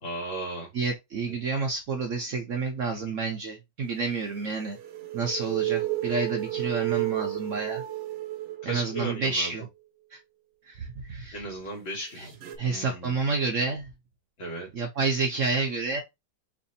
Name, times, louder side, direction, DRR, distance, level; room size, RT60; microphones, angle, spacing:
voice 1, 0.0-0.7 2.9-3.0 8.6-9.5 11.3-12.3 12.6-13.2 14.4-14.8, right 1 dB, 90° left, 2.9 m, -36 dB
voice 2, 0.7-4.8 5.1-7.8 8.6-9.6 10.1-10.2 10.6-11.4 12.2-12.3 12.6-13.9 14.7-16.0, right 4 dB, 60° right, 0.8 m, -29 dB
sound 1, 4.4-9.2 12.4-12.6, right 16 dB, 90° right, 0.6 m, -31 dB
4.8 x 2.7 x 2.7 m
omnidirectional pair, 2.0 m